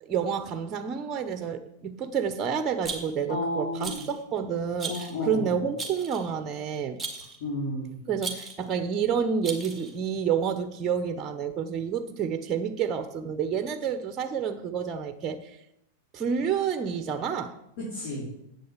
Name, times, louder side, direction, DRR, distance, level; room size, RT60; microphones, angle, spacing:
voice 1, 0.0-7.0 8.1-15.6 16.1-17.6, right 7 dB, 30° right, 0.9 m, -29 dB
Rattle, 2.8-3.3 3.8-4.2 4.8-5.2 5.8-6.3 7.0-7.4 8.2-8.7 9.4-10.0, right 4 dB, 10° right, 2.0 m, -37 dB
voice 2, 3.3-4.0 4.9-5.5 7.4-8.0 17.8-18.3, left 1 dB, 60° left, 3.9 m, -32 dB
8.1 x 6.6 x 8.1 m
hypercardioid pair, 120°, 0 cm